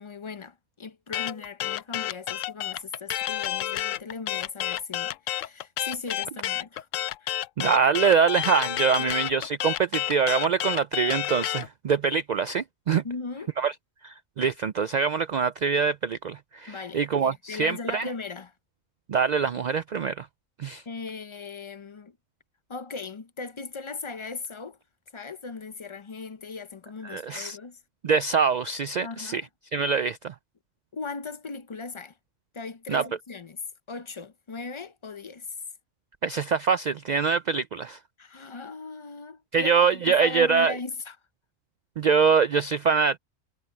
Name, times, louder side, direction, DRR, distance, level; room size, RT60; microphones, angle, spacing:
voice 1, 0.0-6.9 7.2-7.3 9.0-9.1 13.0-13.5 16.7-18.5 20.9-22.2 22.7-24.8 25.1-27.8 29.0-29.5 30.9-32.2 32.5-33.6 33.9-35.5 38.2-41.2, left 4 dB, 40° left, 0.4 m, -38 dB
sound 1, 1.1-11.7, left 13 dB, 90° left, 1.0 m, -30 dB
voice 2, 7.6-13.0 13.6-13.7 14.0-18.1 19.1-20.3 20.6-20.8 27.0-27.6 28.0-29.4 29.7-30.3 32.9-33.1 36.2-38.0 39.5-40.7 42.0-43.2, right 5 dB, 80° right, 0.4 m, -24 dB
omnidirectional pair, 1.3 m